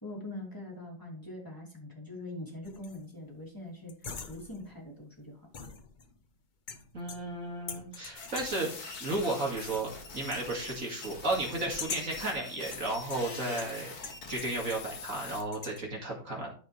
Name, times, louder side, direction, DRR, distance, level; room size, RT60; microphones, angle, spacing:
voice 1, 0.0-5.4, left 1 dB, 10° left, -2 dB, 2.9 m, -43 dB
sound 1, 2.6-3.1 3.9-4.8 5.5-6.3 6.7-7.4 7.7-8.7 9.3-9.9 10.2-10.5 11.5-12.2 12.7-14.9 15.2-15.8, left 5 dB, 75° left, 0.4 m, -43 dB
voice 2, 6.9-13.9 14.3-16.5, right 2 dB, 45° right, -1 dB, 2.5 m, -34 dB
sound 2, 8.2-15.4, left 4 dB, 55° left, 1.9 m, -44 dB
13.0 x 5.1 x 3.3 m, 0.41 s
omnidirectional pair, 2.1 m